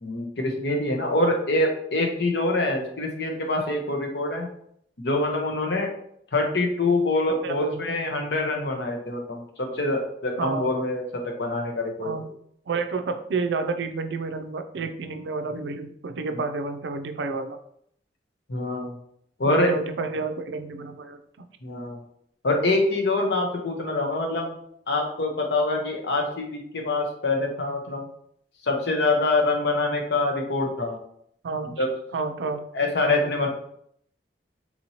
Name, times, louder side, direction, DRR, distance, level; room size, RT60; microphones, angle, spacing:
voice 1, 0.0-4.5 5.0-5.9 6.3-12.1 18.5-18.9 19.4-19.7 21.6-22.0 22.4-24.5 24.9-28.1 28.6-31.0 31.8-31.9 32.7-33.5, left 2 dB, 70° left, 2 dB, 0.8 m, -25 dB
voice 2, 7.4-7.8 10.4-10.7 12.0-12.3 12.7-17.6 19.4-21.5 31.4-31.8 32.1-32.6, right 4 dB, 75° right, 7 dB, 0.4 m, -30 dB
4.2 x 2.9 x 2.8 m, 0.68 s
head